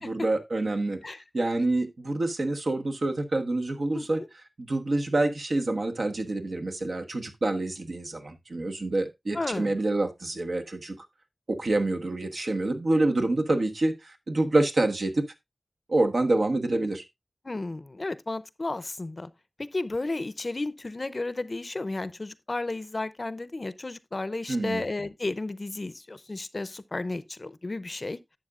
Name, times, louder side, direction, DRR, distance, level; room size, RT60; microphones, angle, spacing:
voice 1, 0.0-1.0 1.3-4.2 4.6-11.0 11.5-15.2 15.9-17.0 24.5-24.8, right 2 dB, 70° right, 1.3 m, -27 dB
voice 2, 9.3-9.7 17.4-19.3 19.6-28.2, left 2 dB, 45° left, 0.6 m, -33 dB
11.5 x 7.4 x 2.4 m
wide cardioid pair, 65°, 0 cm